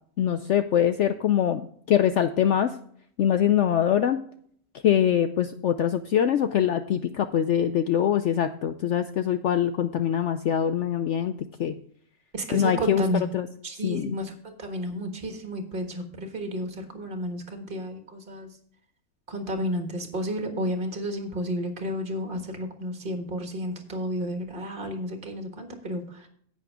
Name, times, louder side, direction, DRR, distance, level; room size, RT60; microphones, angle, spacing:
voice 1, 0.2-2.7 3.2-4.2 4.8-11.3 11.6-11.8 12.5-13.0 13.3-13.5 13.8-14.2, left 9 dB, 65° left, 10 dB, 0.7 m, -23 dB
voice 2, 12.3-13.2 13.6-18.5 19.3-26.3, equal, 35° right, 5 dB, 1.7 m, -32 dB
10.5 x 8.5 x 3.6 m, 0.62 s
omnidirectional pair, 1.6 m